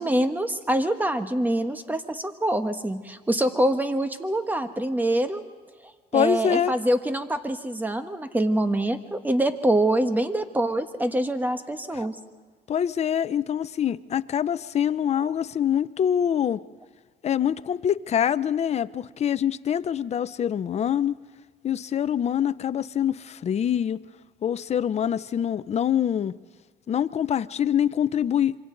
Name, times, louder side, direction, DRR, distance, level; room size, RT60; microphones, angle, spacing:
voice 1, 0.0-5.4 6.1-12.2, right 1 dB, 10° right, 8 dB, 1.4 m, -25 dB
voice 2, 6.1-6.7 11.9-12.0 12.7-16.6 17.2-21.2 21.6-24.0 24.4-26.3 26.9-28.6, left 9 dB, 40° left, 14 dB, 0.6 m, -25 dB
27.0 x 24.0 x 4.0 m, 1.5 s
cardioid pair, 110°, 17 cm